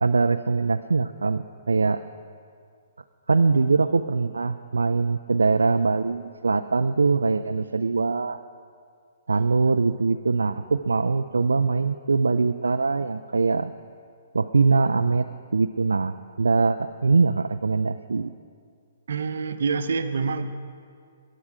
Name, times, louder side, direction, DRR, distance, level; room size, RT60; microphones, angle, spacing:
voice 1, 0.0-2.0 3.3-8.4 9.3-13.7 14.3-15.3 15.5-18.3, right 4 dB, 85° right, 10 dB, 0.3 m, -22 dB
voice 2, 19.1-20.5, right 5 dB, 65° right, 9 dB, 0.7 m, -26 dB
14.5 x 9.9 x 4.9 m, 2.2 s
hypercardioid pair, 130°, 0 cm